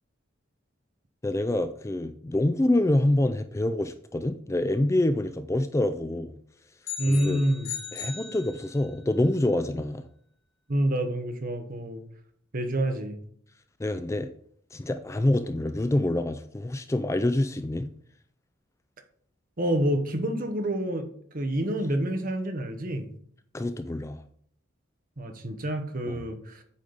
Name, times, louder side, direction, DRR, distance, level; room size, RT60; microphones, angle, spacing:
voice 1, 1.2-6.4 7.1-7.4 7.9-10.1 13.8-14.3 14.7-17.9 23.5-24.2 26.1-26.2, left 1 dB, 15° left, 9 dB, 0.3 m, -26 dB
sound 1, 6.8-9.0, left 7 dB, 80° left, 2.0 m, -38 dB
voice 2, 7.0-7.7 10.7-12.0 12.5-13.2 19.6-21.1 21.3-23.1 25.2-26.6, right 1 dB, 45° right, 6 dB, 1.0 m, -27 dB
8.4 x 5.1 x 4.0 m, 0.62 s
head